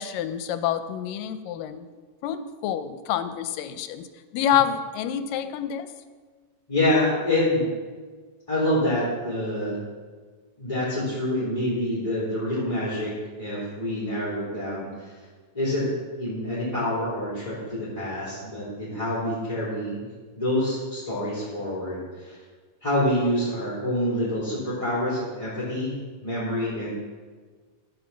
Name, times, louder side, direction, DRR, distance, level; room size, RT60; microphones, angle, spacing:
voice 1, 0.0-1.9 2.2-4.1 4.3-5.9, left 9 dB, 85° left, 11 dB, 2.3 m, -27 dB
voice 2, 6.7-7.7 8.5-9.7 10.6-13.1 13.4-15.2 15.5-15.9 16.2-20.1 20.4-22.4 22.8-26.9, left 1 dB, 10° left, -11 dB, 3.1 m, -26 dB
14.5 x 5.3 x 7.1 m, 1.5 s
omnidirectional pair, 3.9 m